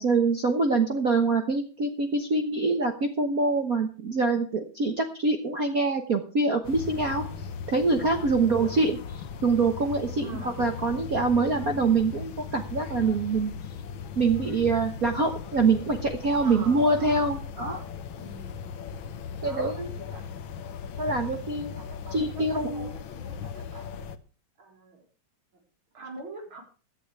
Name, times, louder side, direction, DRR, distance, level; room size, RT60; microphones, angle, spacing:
voice 1, 0.0-7.2 7.7-9.0 9.4-13.5 14.2-17.8 19.4-19.9 21.0-21.7 22.1-22.9, right 3 dB, 65° right, 5 dB, 0.9 m, -25 dB
sound 1, 6.6-24.2, left 6 dB, 85° left, 1.1 m, -38 dB
voice 2, 8.3-8.8 10.2-10.7 16.4-17.3 17.6-20.4 21.6-24.1 24.6-25.1 25.9-26.6, right 3 dB, 40° right, 2 dB, 4.5 m, -45 dB
16.5 x 11.5 x 3.3 m, 0.37 s
omnidirectional pair, 3.6 m